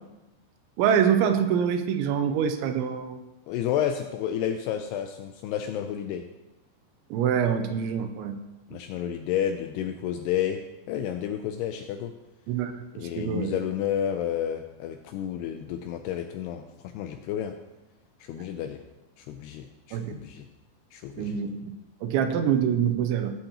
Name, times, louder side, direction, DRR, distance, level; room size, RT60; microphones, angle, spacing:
voice 1, 0.8-3.2 7.1-8.4 12.5-12.7 13.0-13.5 19.9-20.2 21.2-21.7 22.0-23.3, right 8 dB, 90° right, 8 dB, 3.0 m, -25 dB
voice 2, 3.5-6.2 8.7-10.6 10.9-12.1 12.9-16.6 16.9-17.5 18.3-18.8 19.3-20.5 20.9-21.4, left 10 dB, 85° left, 5 dB, 2.3 m, -30 dB
16.0 x 7.9 x 2.9 m, 1.0 s
omnidirectional pair, 5.3 m